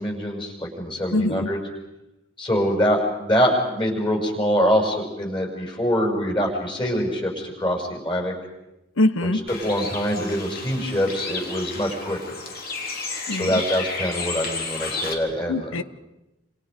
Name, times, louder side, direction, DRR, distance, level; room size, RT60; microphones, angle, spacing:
voice 1, 0.0-1.6 2.4-8.3 9.6-12.4 13.4-15.8, equal, 25° left, 1 dB, 6.3 m, -24 dB
voice 2, 1.1-1.5 9.0-9.4 13.3-13.6 15.5-15.8, left 2 dB, 85° left, 14 dB, 1.1 m, -23 dB
Bird, 9.5-15.1, left 3 dB, 50° left, 3.5 m, -32 dB
28.5 x 28.0 x 5.3 m, 0.94 s
head